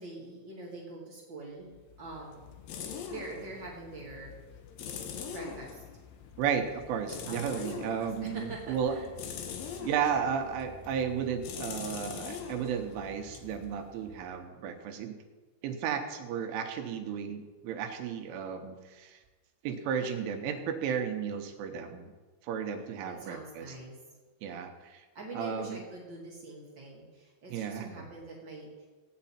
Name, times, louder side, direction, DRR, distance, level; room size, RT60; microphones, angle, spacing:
voice 1, 0.0-2.6 3.0-4.4 5.3-5.8 7.3-7.7 7.9-9.1 23.0-24.0 25.1-28.9, right 2 dB, 50° right, -4 dB, 1.4 m, -44 dB
sound 1, 1.7-14.4, left 7 dB, 90° left, 2.0 m, -43 dB
voice 2, 6.4-9.0 9.8-15.1 15.6-19.2 19.6-22.1 22.4-23.7 24.4-25.0 25.4-25.8 27.5-28.1, right 7 dB, 80° right, 5 dB, 3.4 m, -34 dB
16.0 x 9.5 x 4.3 m, 1.3 s
omnidirectional pair, 5.7 m